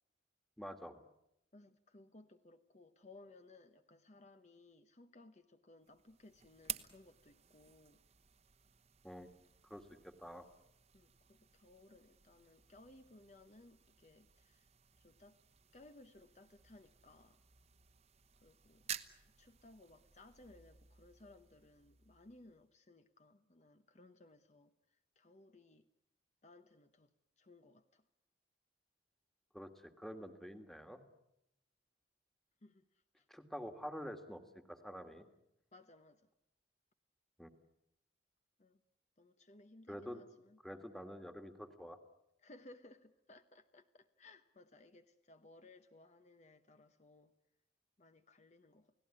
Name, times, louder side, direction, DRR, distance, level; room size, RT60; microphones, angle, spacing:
voice 1, 0.6-1.0 9.0-9.3 9.6-10.5 29.5-31.0 33.3-35.3 37.4-37.5 39.9-40.2 40.6-42.0, equal, ahead, 1.8 m, -48 dB
voice 2, 1.5-8.0 10.9-14.7 15.0-15.4 15.7-17.4 18.4-18.8 19.4-24.7 25.2-25.9 26.4-28.0 32.6-32.8 33.2-33.3 35.7-36.2 38.6-38.8 39.2-40.8 42.4-47.3 48.0-48.9, left 2 dB, 40° left, 1.0 m, -61 dB
sound 1, 5.8-22.8, right 10 dB, 35° right, 1.1 m, -53 dB
29.5 x 18.0 x 9.8 m
head